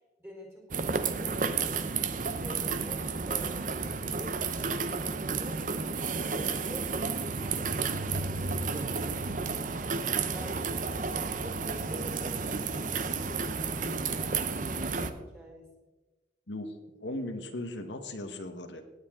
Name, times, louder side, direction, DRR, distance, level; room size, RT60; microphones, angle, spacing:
voice 1, 0.2-1.7 2.2-5.6 6.2-6.9 7.2-11.0 11.4-15.7, equal, 15° right, -1 dB, 4.3 m, -48 dB
sound 1, 0.7-15.1, right 4 dB, 45° right, 0.7 m, -32 dB
voice 2, 17.0-18.8, left 1 dB, 80° left, 5 dB, 1.3 m, -37 dB
17.5 x 9.6 x 3.7 m, 1.2 s
head